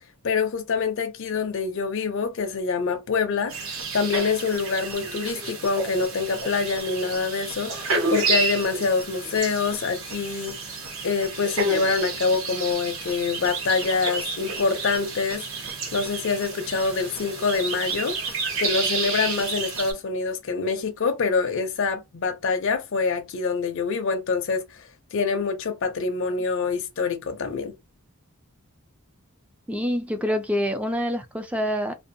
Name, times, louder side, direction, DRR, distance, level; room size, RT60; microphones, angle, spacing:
voice 1, 0.2-3.5 3.9-10.6 11.0-15.4 15.9-18.2 18.6-27.7, left 4 dB, 60° left, 0.5 m, -25 dB
sound 1, 3.5-19.9, right 4 dB, 60° right, 0.8 m, -30 dB
voice 2, 29.7-31.9, equal, 5° right, 0.3 m, -26 dB
2.5 x 2.2 x 2.6 m
head